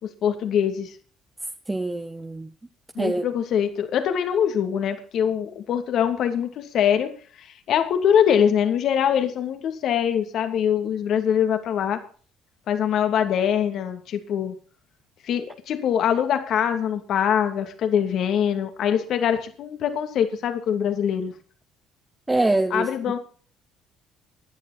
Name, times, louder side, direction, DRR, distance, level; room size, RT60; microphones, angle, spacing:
voice 1, 0.0-0.9 2.9-7.1 7.4-12.0 12.7-14.5 15.3-21.3 22.7-23.2, left 8 dB, 60° left, 2.6 m, -23 dB
voice 2, 1.7-2.5 3.0-3.2 22.3-22.9, right 2 dB, 15° right, 1.4 m, -24 dB
16.0 x 11.0 x 4.3 m
hypercardioid pair, 60°, 0 cm